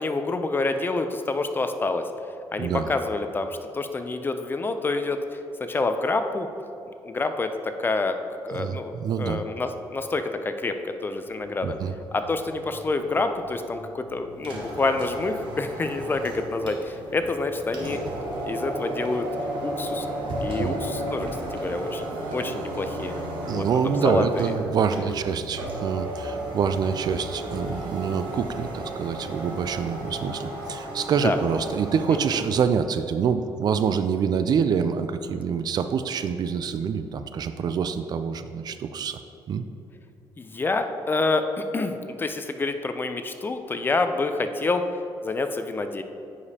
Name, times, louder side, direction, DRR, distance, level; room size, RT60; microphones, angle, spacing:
voice 1, 0.0-2.1 2.5-6.5 7.0-8.2 8.4-11.8 12.1-18.0 18.4-19.3 19.6-20.1 20.4-23.1 23.5-24.5 24.9-25.2 31.2-31.4 32.1-32.2 40.4-44.9 45.2-46.0, left 3 dB, 25° left, 8 dB, 0.4 m, -27 dB
voice 2, 8.6-9.4 11.6-11.9 20.5-20.8 23.5-39.2 39.5-39.6, right 6 dB, 55° right, 10 dB, 0.3 m, -26 dB
sound 1, 11.2-18.1, left 2 dB, 75° left, 1.4 m, -48 dB
sound 2, 14.3-32.6, right 1 dB, 70° right, 1.3 m, -34 dB
9.5 x 5.0 x 2.8 m, 2.7 s
cardioid pair, 100°, 8 cm